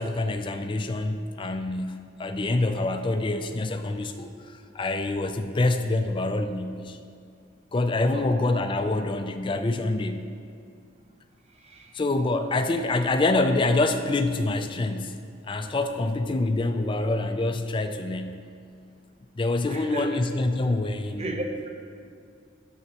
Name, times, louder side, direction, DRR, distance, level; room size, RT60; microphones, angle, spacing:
voice 1, 0.0-7.0 7.7-10.3 11.9-18.4 19.4-21.4, left 2 dB, 25° left, 7 dB, 0.3 m, -26 dB
voice 2, 8.0-8.4 11.6-11.9 19.7-20.2 21.1-21.7, right 1 dB, 30° right, 3 dB, 0.7 m, -35 dB
9.6 x 7.2 x 2.9 m, 2.3 s
head